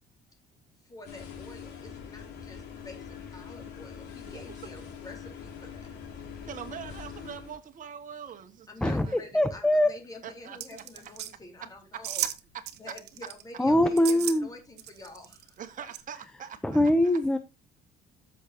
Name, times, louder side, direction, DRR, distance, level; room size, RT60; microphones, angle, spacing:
voice 1, 0.8-5.9 8.7-12.3 12.8-15.6, left 2 dB, 20° left, 4.0 m, -48 dB
sound 1, 1.0-7.6, left 7 dB, 80° left, 3.6 m, -43 dB
voice 2, 6.4-9.3 10.2-10.8 11.6-12.9 13.2-13.3 15.6-17.2, right 8 dB, 50° right, 1.7 m, -43 dB
voice 3, 8.8-9.9 13.6-14.5 16.6-17.4, left 1 dB, 5° left, 0.7 m, -23 dB
sound 2, 10.6-11.3 12.0-12.4 12.7-13.4 14.0-14.4 14.8-15.5 15.9-16.0, right 13 dB, 80° right, 1.2 m, -34 dB
13.5 x 6.8 x 2.9 m
cardioid pair, 110°, 17 cm